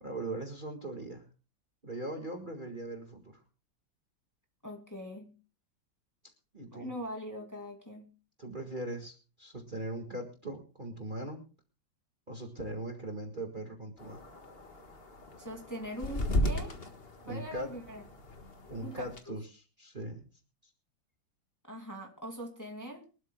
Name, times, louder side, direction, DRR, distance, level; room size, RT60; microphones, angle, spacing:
voice 1, 0.0-1.2 1.8-3.4 6.5-6.9 8.4-11.4 12.3-14.2 17.2-17.7 18.7-20.3, right 1 dB, 25° right, 2 dB, 1.9 m, -40 dB
voice 2, 4.6-5.3 6.7-8.1 15.4-16.8 17.3-18.0 18.8-19.4 21.6-23.0, equal, 10° left, 1 dB, 2.2 m, -42 dB
sound 1, 14.0-19.2, left 1 dB, 30° left, 1.5 m, -36 dB
24.0 x 12.5 x 2.2 m, 0.34 s
omnidirectional pair, 2.1 m